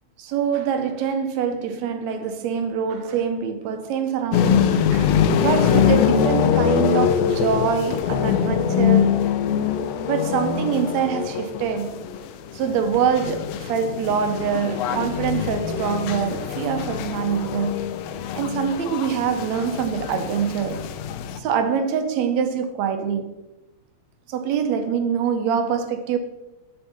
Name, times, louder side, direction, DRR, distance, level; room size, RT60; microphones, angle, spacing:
voice 1, 0.2-4.7 4.9-9.2 10.0-12.0 12.5-17.8 18.4-20.9 21.4-23.4 24.3-26.2, right 7 dB, 80° right, 1.9 m, -24 dB
sound 1, 4.3-21.4, left 8 dB, 80° left, 1.5 m, -23 dB
7.0 x 6.8 x 4.3 m
omnidirectional pair, 3.3 m